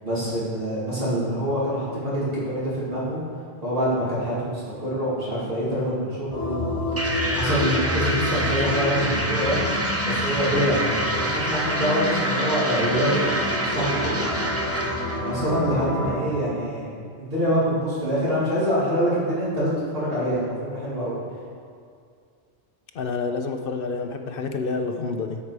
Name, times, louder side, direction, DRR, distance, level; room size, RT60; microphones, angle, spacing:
voice 1, 0.0-3.2 3.6-6.7 7.3-9.7 10.0-13.3 13.6-14.3 15.2-16.9 17.2-21.2, equal, 55° right, -9 dB, 2.7 m, -25 dB
sound 1, 6.3-16.2, left 1 dB, 25° left, 2.2 m, -29 dB
sound 2, 7.0-15.2, right 1 dB, 15° right, 0.7 m, -27 dB
voice 2, 22.9-25.4, left 4 dB, 55° left, 5 dB, 0.8 m, -28 dB
13.0 x 5.8 x 4.8 m, 2.2 s
omnidirectional pair, 1.2 m